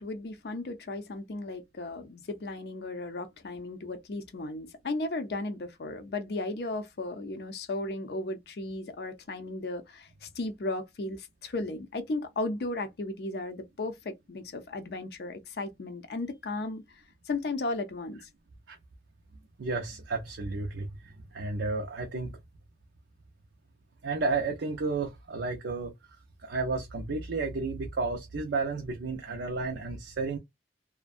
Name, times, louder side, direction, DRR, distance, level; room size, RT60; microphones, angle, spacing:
voice 1, 0.0-16.8 17.3-18.3, left 2 dB, 60° left, 0.5 m, -35 dB
voice 2, 19.6-22.4 24.0-25.9 26.4-30.4, right 3 dB, 80° right, 0.5 m, -32 dB
2.5 x 2.1 x 2.4 m
head